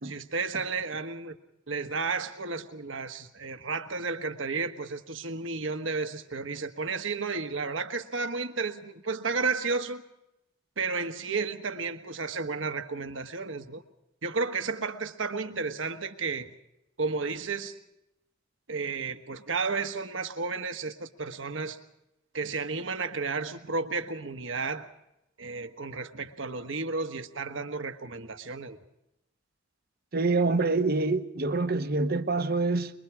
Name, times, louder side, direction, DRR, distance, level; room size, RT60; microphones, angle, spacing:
voice 1, 0.0-1.3 1.7-10.0 10.8-13.8 14.2-16.5 17.0-17.7 18.7-21.8 22.3-24.9 25.4-28.8, right 4 dB, 70° right, 1.3 m, -32 dB
voice 2, 30.1-32.9, right 3 dB, 50° right, 1.0 m, -26 dB
24.0 x 22.5 x 4.9 m
head